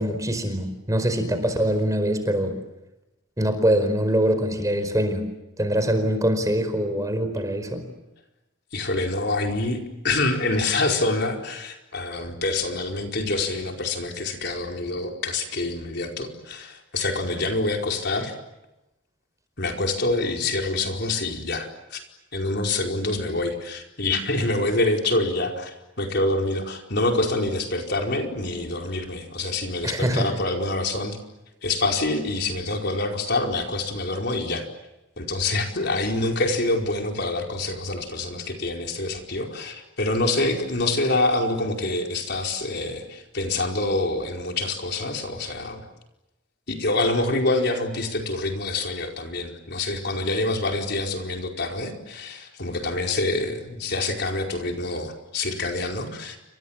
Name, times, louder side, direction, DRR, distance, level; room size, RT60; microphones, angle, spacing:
voice 1, 0.0-2.6 3.4-5.3 5.6-7.9 29.8-30.3, equal, 15° right, 9 dB, 4.8 m, -23 dB
voice 2, 8.7-9.8 10.0-18.3 19.6-22.0 22.3-31.2 31.6-34.7 35.2-45.8 46.7-56.4, left 2 dB, 55° left, 2 dB, 4.9 m, -26 dB
30.0 x 26.5 x 7.4 m, 0.95 s
head